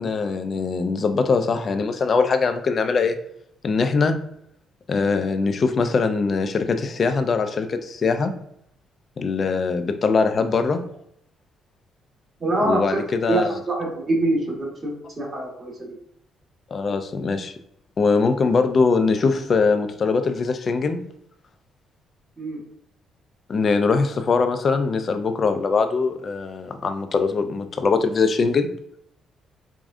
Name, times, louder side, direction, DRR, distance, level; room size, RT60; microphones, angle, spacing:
voice 1, 0.0-3.2 3.6-4.2 4.9-8.3 9.2-10.8 12.6-13.5 16.7-17.5 18.0-21.0 23.5-28.7, left 4 dB, 45° left, 8 dB, 0.4 m, -22 dB
voice 2, 12.4-12.8 13.3-13.4 13.7-15.9 22.4-22.6, right 2 dB, 35° right, -2 dB, 1.5 m, -24 dB
4.8 x 2.4 x 2.5 m, 0.72 s
cardioid pair, 90°, 0 cm